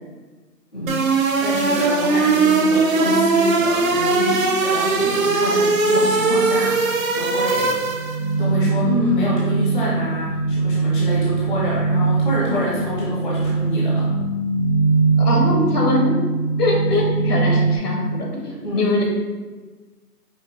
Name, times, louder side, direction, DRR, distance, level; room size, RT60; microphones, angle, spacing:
voice 1, 0.7-1.1 1.4-6.9 7.1-7.8 8.4-14.1 18.6-19.0, equal, 35° left, -6 dB, 0.5 m, -26 dB
sound 1, 0.9-8.3, right 3 dB, 55° right, 0.7 m, -19 dB
sound 2, 5.9-6.1 6.5-17.8, right 3 dB, 85° left, 1.4 m, -21 dB
voice 2, 15.2-16.1 16.6-19.0, left 2 dB, 70° left, -1 dB, 1.3 m, -22 dB
5.0 x 2.3 x 3.8 m, 1.3 s
hypercardioid pair, 165°, 48 cm